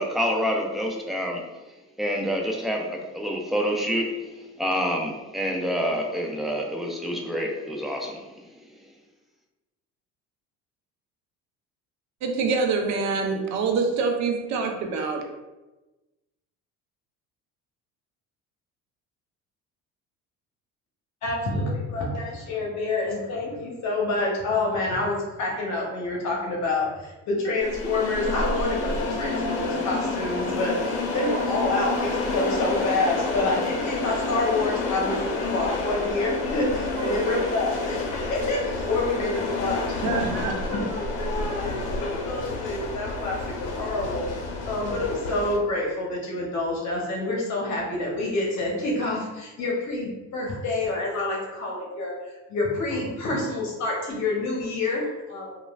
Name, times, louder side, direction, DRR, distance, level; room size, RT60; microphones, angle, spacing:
voice 1, 0.0-1.4 2.0-8.2, equal, ahead, 0 dB, 0.3 m, -27 dB
voice 2, 12.2-15.2 37.0-37.3 40.0-40.5, right 4 dB, 60° right, 3 dB, 0.6 m, -26 dB
voice 3, 21.2-44.3 44.6-55.6, left 2 dB, 55° left, -2 dB, 0.8 m, -28 dB
sound 1, 27.6-45.6, left 3 dB, 80° left, 0.6 m, -29 dB
3.0 x 2.3 x 2.3 m, 1.1 s
supercardioid pair, 95°, 33 cm